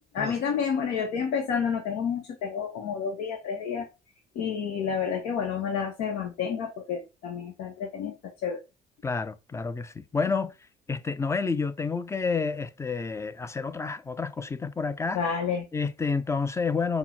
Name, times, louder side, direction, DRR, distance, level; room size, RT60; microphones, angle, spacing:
voice 1, 0.1-3.9 4.3-8.6 15.1-15.6, left 6 dB, 75° left, 0.9 m, -30 dB
voice 2, 9.0-10.5 10.9-15.2 15.7-17.0, left 4 dB, 20° left, 0.5 m, -29 dB
5.9 x 2.1 x 4.3 m
supercardioid pair, 85°, 16 cm